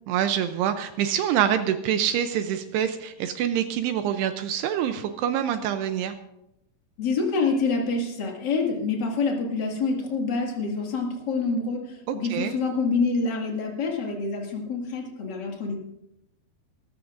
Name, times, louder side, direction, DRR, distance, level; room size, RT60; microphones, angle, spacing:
voice 1, 0.1-6.1 12.1-12.5, right 9 dB, 80° right, 8 dB, 2.6 m, -26 dB
voice 2, 7.0-15.8, left 4 dB, 40° left, 0 dB, 1.5 m, -27 dB
22.5 x 14.0 x 2.6 m, 0.84 s
omnidirectional pair, 5.1 m